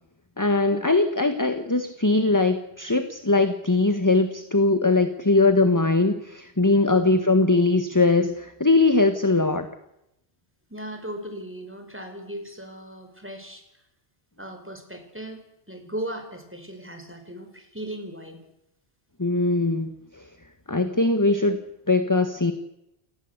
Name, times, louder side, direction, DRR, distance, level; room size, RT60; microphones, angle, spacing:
voice 1, 0.4-9.7 19.2-20.2 20.7-21.6 21.9-22.5, left 3 dB, 15° left, 9 dB, 1.5 m, -21 dB
voice 2, 6.9-7.2 10.7-13.6 14.4-18.4, right 1 dB, 10° right, 6 dB, 4.9 m, -37 dB
29.0 x 19.0 x 8.2 m, 0.86 s
omnidirectional pair, 1.1 m